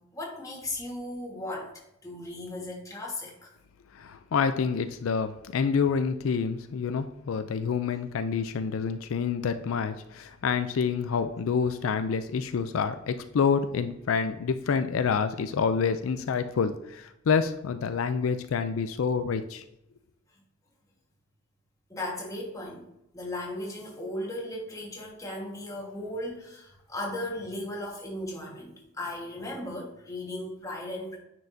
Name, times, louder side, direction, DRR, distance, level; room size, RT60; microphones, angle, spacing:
voice 1, 0.1-3.5 21.9-22.8 23.1-31.2, left 1 dB, 15° left, -2 dB, 1.4 m, -36 dB
voice 2, 3.9-19.6, left 6 dB, 85° left, 10 dB, 0.4 m, -27 dB
9.4 x 4.6 x 2.7 m, 0.82 s
head